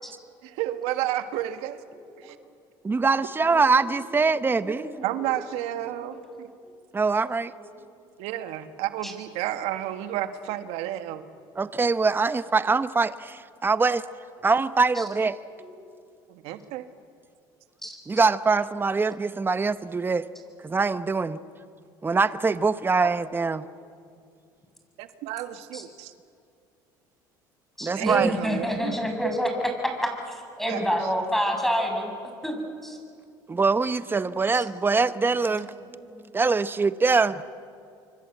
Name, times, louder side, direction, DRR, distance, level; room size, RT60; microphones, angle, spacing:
voice 1, 0.4-1.8 2.2-2.4 5.0-6.5 8.2-11.2 16.3-16.8 23.0-23.1 25.0-26.1 27.9-29.0 30.7-30.8, right 13 dB, 75° right, 9 dB, 1.6 m, -31 dB
voice 2, 2.8-4.9 6.9-7.5 11.6-14.0 14.4-15.4 18.1-20.3 20.6-21.4 22.0-23.6 27.8-28.3 33.5-35.7 36.3-37.4, right 4 dB, 20° right, 13 dB, 0.9 m, -23 dB
voice 3, 4.1-5.3 5.8-6.4 6.6-6.7 7.5-8.0 9.0-9.1 12.3-12.5 14.9-15.0 15.6-15.7 17.8-18.0 20.7-20.8 25.7-25.8 27.8-29.7 30.0-33.0 34.2-35.2 35.5-36.3 37.1-37.4, equal, 5° left, 3 dB, 7.3 m, -31 dB
26.5 x 24.5 x 8.1 m, 2.4 s
supercardioid pair, 80°, 11 cm